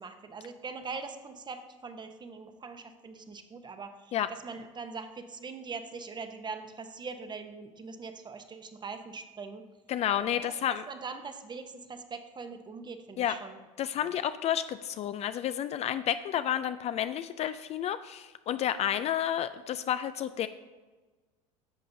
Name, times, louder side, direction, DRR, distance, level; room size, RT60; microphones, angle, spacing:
voice 1, 0.0-9.6 10.2-10.6 10.9-13.6 14.0-14.1, right 4 dB, 25° right, 8 dB, 0.9 m, -42 dB
voice 2, 9.9-10.8 13.2-13.4 13.8-20.5, left 10 dB, 40° left, 12 dB, 0.4 m, -30 dB
10.5 x 6.6 x 2.7 m, 1.3 s
hypercardioid pair, 80°, 17 cm